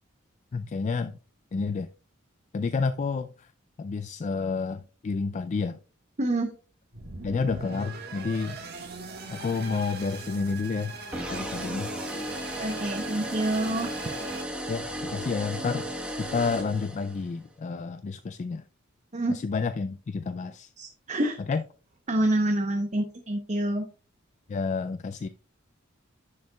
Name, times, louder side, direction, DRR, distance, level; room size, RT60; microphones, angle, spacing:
voice 1, 0.5-1.1 1.5-1.9 2.5-3.5 3.8-5.8 7.2-8.6 9.3-10.9 11.3-11.9 14.7-15.9 16.2-18.6 19.3-20.7 21.5-21.6 24.5-25.3, left 4 dB, 35° left, 0.3 m, -30 dB
voice 2, 6.2-6.5 12.6-13.9 19.1-19.4 20.8-21.4 22.1-23.9, right 1 dB, 35° right, 0.8 m, -27 dB
sound 1, 6.9-14.4, right 3 dB, 55° right, 1.5 m, -41 dB
sound 2, 11.1-17.3, right 1 dB, 5° right, 1.1 m, -35 dB
10.5 x 6.6 x 2.3 m
head